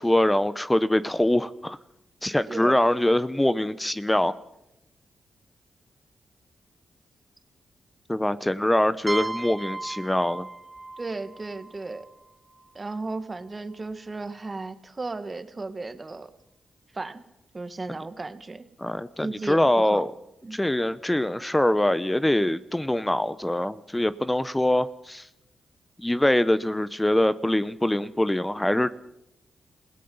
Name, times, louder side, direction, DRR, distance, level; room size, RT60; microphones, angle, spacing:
voice 1, 0.0-1.8 2.2-4.3 8.1-10.5 18.8-20.1 20.5-25.3 26.0-28.9, left 1 dB, 15° left, 14 dB, 0.8 m, -23 dB
voice 2, 2.5-2.8 11.0-12.1 12.7-16.3 16.9-17.2 17.5-18.7 19.2-20.1 20.4-20.7, right 3 dB, 35° right, 10 dB, 1.8 m, -35 dB
sound 1, 9.1-12.7, right 2 dB, 20° right, 1.0 m, -36 dB
27.5 x 17.0 x 5.6 m, 0.84 s
supercardioid pair, 50°, 0 cm